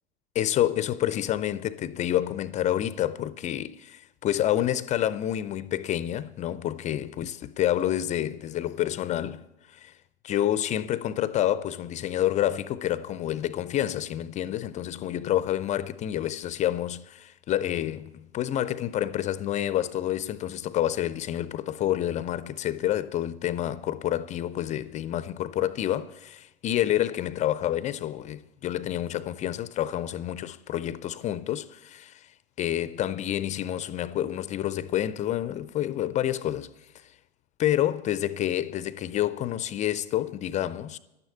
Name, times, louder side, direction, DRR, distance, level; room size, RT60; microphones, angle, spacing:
voice 1, 0.3-9.9 10.2-32.3 32.6-36.7 37.0-37.1 37.6-41.0, left 12 dB, 25° left, 0.4 m, -28 dB
12.0 x 9.5 x 8.3 m
hypercardioid pair, 95°, 31 cm